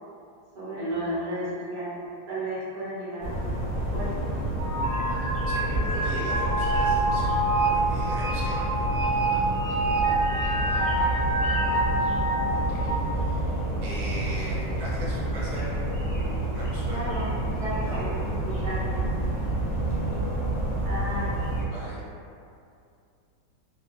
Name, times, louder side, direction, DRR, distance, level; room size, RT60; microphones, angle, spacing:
voice 1, 0.5-4.3 16.9-18.2 18.6-19.0 20.8-21.3, right 1 dB, 45° right, -9 dB, 0.8 m, -33 dB
sound 1, 3.2-21.7, right 1 dB, 65° left, 1.1 m, -29 dB
sound 2, 4.6-13.0, right 1 dB, 50° left, 0.9 m, -27 dB
voice 2, 5.5-7.4 7.7-8.6 12.5-15.8 16.5-17.1 17.8-18.2 21.6-22.0, equal, 65° right, -8 dB, 1.2 m, -39 dB
3.3 x 2.1 x 2.4 m, 2.5 s
omnidirectional pair, 2.0 m